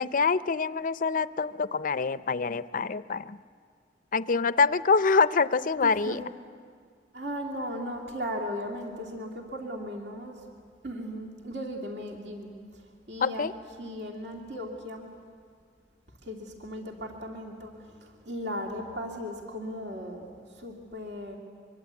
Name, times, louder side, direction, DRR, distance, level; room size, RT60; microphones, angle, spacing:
voice 1, 0.0-3.4 4.1-6.2 13.2-13.5, left 4 dB, 50° left, 15 dB, 0.5 m, -25 dB
voice 2, 5.8-6.2 7.1-10.4 10.8-13.5 13.8-15.1 16.2-21.4, equal, 65° right, 0 dB, 2.7 m, -37 dB
24.5 x 24.0 x 8.3 m, 2.1 s
head